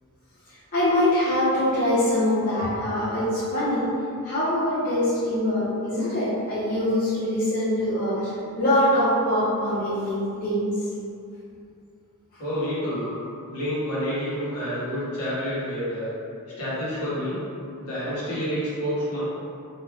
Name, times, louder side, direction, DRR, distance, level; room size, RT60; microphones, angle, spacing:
voice 1, 0.7-3.9 4.2-10.8 12.8-12.9, left 1 dB, 40° left, -12 dB, 0.7 m, -23 dB
voice 2, 12.4-13.1 13.5-16.1 16.6-17.4 17.8-19.2, equal, 80° left, -10 dB, 1.1 m, -28 dB
2.5 x 2.2 x 3.3 m, 2.5 s
head